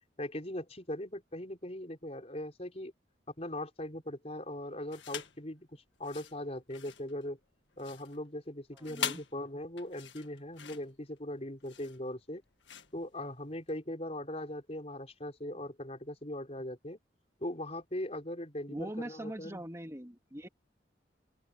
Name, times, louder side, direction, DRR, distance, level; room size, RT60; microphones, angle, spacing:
voice 1, 0.2-2.9 3.4-7.4 7.8-12.4 12.9-17.0 17.4-19.6, left 1 dB, 35° left, 5.1 m, -40 dB
sound 1, 4.9-5.4 5.9-13.8, left 8 dB, 90° left, 1.8 m, -43 dB
voice 2, 8.7-9.2 18.7-20.5, right 1 dB, 15° right, 2.9 m, -42 dB
open air
head